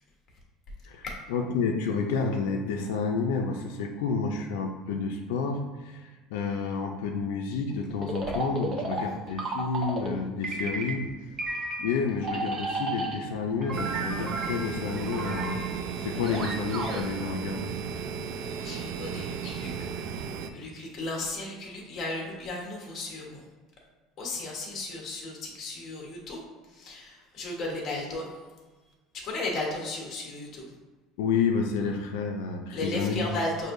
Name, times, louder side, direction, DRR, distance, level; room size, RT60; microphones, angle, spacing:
voice 1, 0.9-15.7 15.9-17.7 31.2-33.3, left 5 dB, 85° left, 2 dB, 0.4 m, -30 dB
sound 1, 8.0-10.2 10.4-11.1 11.4-13.3 13.6-17.0, right 2 dB, 35° right, 0.7 m, -33 dB
sound 2, 13.7-20.5, right 7 dB, 60° right, 0.3 m, -35 dB
voice 2, 18.4-20.1 20.5-23.4 24.2-28.3 29.1-30.7 32.7-33.7, left 2 dB, 35° left, -1 dB, 1.2 m, -35 dB
6.2 x 2.6 x 2.6 m, 1.3 s
cardioid pair, 145°, 0 cm